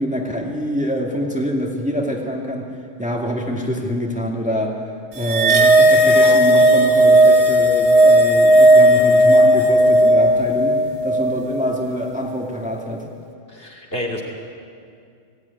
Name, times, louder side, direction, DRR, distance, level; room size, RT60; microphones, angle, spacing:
voice 1, 0.0-2.7 3.0-4.8 5.1-13.1, equal, 5° right, -1 dB, 2.1 m, -25 dB
sound 1, 5.2-11.8, right 1 dB, 65° right, 1.6 m, -13 dB
voice 2, 13.5-14.2, left 1 dB, 50° left, -1 dB, 3.1 m, -28 dB
18.5 x 16.0 x 9.7 m, 2.3 s
omnidirectional pair, 1.3 m